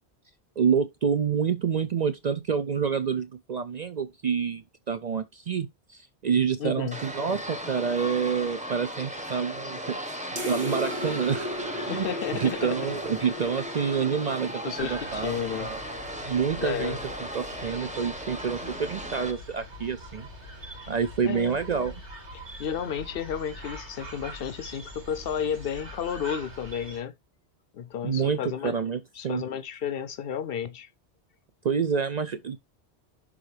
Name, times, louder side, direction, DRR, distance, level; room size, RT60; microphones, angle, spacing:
voice 1, 0.6-11.5 11.8-12.1 12.3-15.3 15.6-15.8 16.3-17.0 17.3-20.3 20.9-22.0 28.0-29.4 31.6-32.6, right 6 dB, 50° right, 0.5 m, -28 dB
voice 2, 6.6-7.0 11.9-12.8 14.6-15.7 16.6-17.0 21.2-21.6 22.3-27.1 27.7-28.8 29.2-30.9, left 8 dB, 65° left, 0.7 m, -32 dB
sound 1, 6.9-19.3, equal, 5° right, 1.0 m, -37 dB
sound 2, 10.4-15.2, left 1 dB, 75° right, 2.4 m, -36 dB
sound 3, 14.8-27.0, equal, 90° right, 2.7 m, -43 dB
11.0 x 3.8 x 3.2 m
omnidirectional pair, 1.1 m